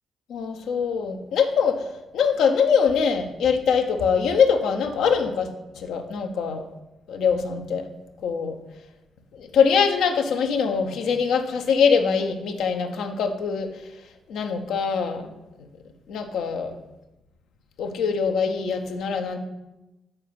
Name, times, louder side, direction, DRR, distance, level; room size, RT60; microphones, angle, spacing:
voice 1, 0.3-1.9 2.1-6.6 7.1-7.9 8.2-8.6 9.3-13.7 14.3-15.2 16.1-16.7 17.8-19.4, left 6 dB, 70° left, 5 dB, 0.7 m, -23 dB
6.7 x 4.6 x 5.7 m, 1.0 s
hypercardioid pair, 45°, 0 cm